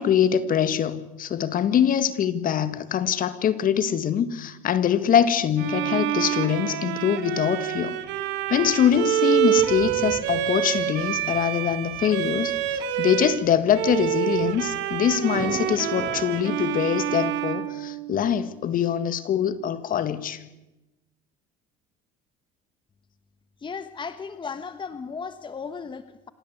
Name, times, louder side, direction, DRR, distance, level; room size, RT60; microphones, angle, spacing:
voice 1, 0.0-8.0 8.5-20.4, left 9 dB, 50° left, 13 dB, 1.9 m, -23 dB
Bowed string instrument, 5.6-13.4 13.7-18.5, right 13 dB, 70° right, 2.2 m, -27 dB
Thunder, 8.0-17.0, right 4 dB, 35° right, 6.0 m, -42 dB
voice 2, 23.6-26.3, left 5 dB, 25° left, 11 dB, 1.3 m, -35 dB
26.5 x 16.5 x 8.1 m, 0.98 s
supercardioid pair, 90°, 19 cm